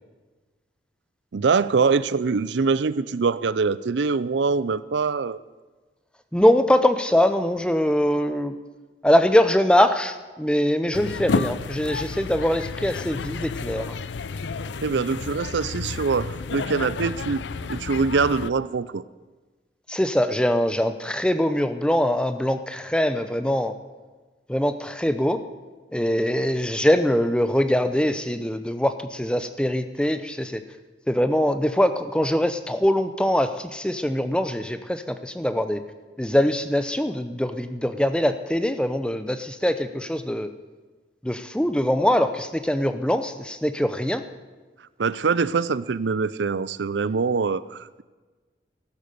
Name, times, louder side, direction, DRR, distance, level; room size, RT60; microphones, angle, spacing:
voice 1, 1.3-5.4 14.8-17.4 17.7-19.0 45.0-48.0, right 4 dB, 80° right, 17 dB, 0.5 m, -24 dB
voice 2, 6.3-8.5 9.0-14.0 19.9-23.7 24.5-25.4 25.9-30.6 31.1-35.8 36.2-40.5 41.2-44.2, equal, 5° left, 10 dB, 0.7 m, -22 dB
sound 1, 10.9-18.5, left 4 dB, 85° left, 0.5 m, -31 dB
15.0 x 13.0 x 6.8 m, 1.3 s
head